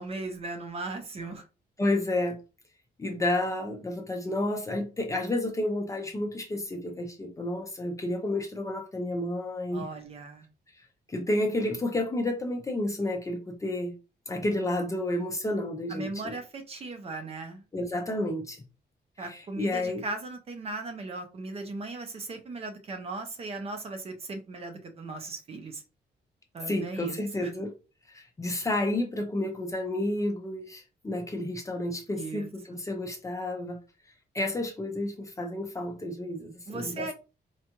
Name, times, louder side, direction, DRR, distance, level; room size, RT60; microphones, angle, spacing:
voice 1, 0.0-1.4 9.7-10.5 15.9-17.6 19.2-25.8 26.5-27.5 32.2-32.5 32.7-32.8 36.7-37.1, right 3 dB, 35° right, 0.6 m, -37 dB
voice 2, 1.8-2.4 3.0-9.9 11.1-13.9 14.3-16.4 17.7-18.6 19.3-20.0 26.7-27.7 28.1-33.8 34.3-37.1, left 1 dB, 20° left, 0.5 m, -31 dB
4.4 x 2.4 x 2.9 m
wide cardioid pair, 175°, 17 cm